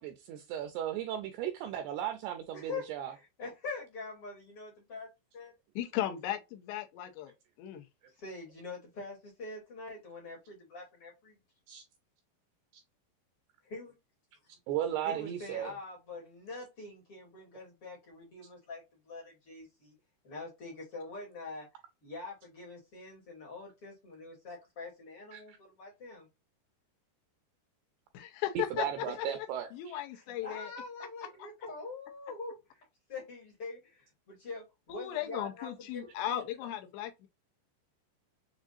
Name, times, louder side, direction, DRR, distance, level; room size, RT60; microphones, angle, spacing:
voice 1, 0.0-3.1 11.7-11.8 12.7-12.8 14.7-15.7 25.3-25.6 28.6-30.0, right 10 dB, 85° right, 2.3 m, -36 dB
voice 2, 2.5-5.1 5.3-5.5 8.2-11.3 13.6-13.9 15.0-19.9 20.2-21.7 22.0-26.3 29.0-29.4 30.1-36.4, left 3 dB, 55° left, 1.6 m, -44 dB
voice 3, 5.8-7.8 28.1-29.5 29.7-30.7 31.2-31.5 34.9-37.3, left 12 dB, 80° left, 2.7 m, -37 dB
7.2 x 2.4 x 2.4 m
omnidirectional pair, 5.3 m